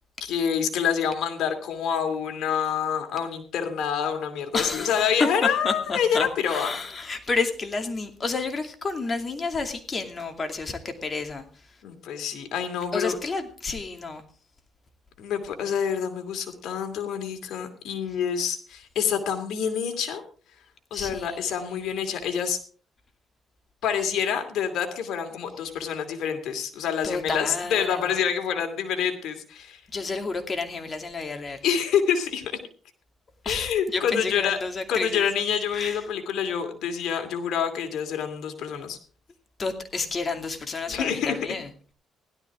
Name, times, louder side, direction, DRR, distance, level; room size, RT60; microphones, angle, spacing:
voice 1, 0.2-6.8 11.8-13.2 15.2-20.2 20.9-22.6 23.8-29.8 31.6-32.5 33.4-34.6 34.9-39.0 40.9-41.4, left 7 dB, 80° left, 6 dB, 2.6 m, -27 dB
voice 2, 4.5-11.5 12.9-14.2 20.9-22.0 27.0-28.1 29.9-31.6 33.4-35.3 35.7-36.0 39.6-41.7, left 3 dB, 35° left, 5 dB, 2.5 m, -30 dB
16.5 x 12.5 x 3.7 m, 0.41 s
cardioid pair, 90°, 0 cm